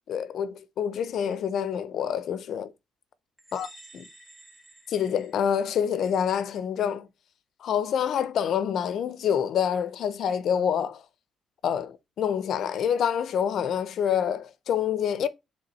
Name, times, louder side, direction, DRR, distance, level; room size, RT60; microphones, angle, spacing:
voice 1, 0.1-2.7 3.5-3.7 3.9-4.1 4.9-7.1 7.6-11.0 11.6-15.3, left 8 dB, 70° left, 0.8 m, -27 dB
sound 1, 3.4-6.0, right 1 dB, 5° right, 2.0 m, -52 dB
7.0 x 3.7 x 5.4 m
cardioid pair, 90°, 0 cm